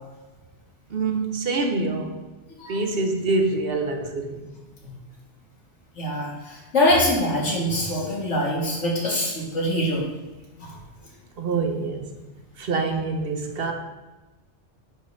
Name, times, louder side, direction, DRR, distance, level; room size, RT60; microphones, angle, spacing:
voice 1, 0.9-2.2 2.7-4.5 11.4-12.1 12.6-13.7, right 3 dB, 60° right, 4 dB, 0.9 m, -25 dB
voice 2, 6.0-10.1 10.6-10.7, left 1 dB, 85° left, -4 dB, 2.1 m, -24 dB
10.5 x 5.1 x 2.7 m, 1.1 s
omnidirectional pair, 1.2 m